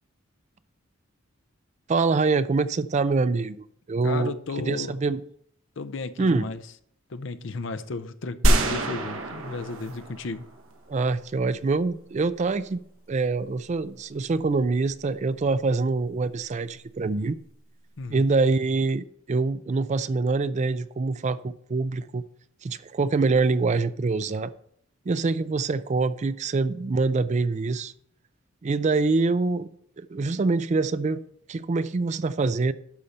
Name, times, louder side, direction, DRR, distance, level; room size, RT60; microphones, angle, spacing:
voice 1, 1.9-4.3 4.7-5.2 6.2-6.5 10.9-12.8 13.1-17.4 18.1-22.2 22.6-24.5 25.1-27.9 28.6-29.7 30.0-31.2 31.5-32.7, right 3 dB, 35° right, 0.4 m, -25 dB
voice 2, 4.0-5.0 5.8-6.6 7.1-10.5 18.0-18.3, left 3 dB, 65° left, 0.6 m, -34 dB
sound 1, 8.4-10.8, right 1 dB, 80° right, 1.3 m, -25 dB
12.0 x 4.3 x 6.5 m
head